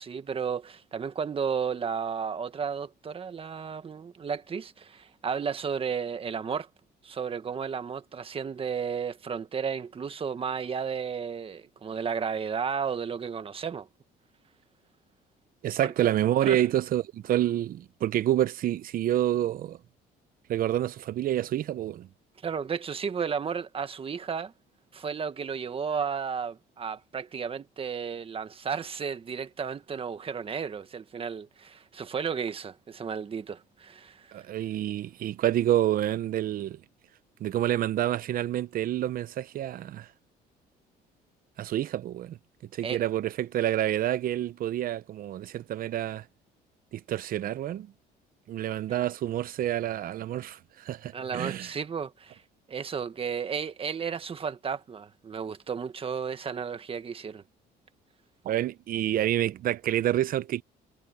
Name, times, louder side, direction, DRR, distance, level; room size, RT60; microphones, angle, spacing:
voice 1, 0.0-6.7 7.0-13.9 15.8-15.9 16.4-16.6 22.4-24.5 24.9-34.3 42.8-43.0 48.9-49.1 51.1-52.4 52.7-57.4, right 6 dB, 35° right, 1.5 m, -33 dB
voice 2, 15.6-19.8 20.5-22.1 34.3-36.8 37.4-40.1 41.6-42.4 42.7-46.2 46.9-47.9 48.5-51.7 58.4-60.6, right 12 dB, 55° right, 0.8 m, -28 dB
cardioid pair, 110°, 17 cm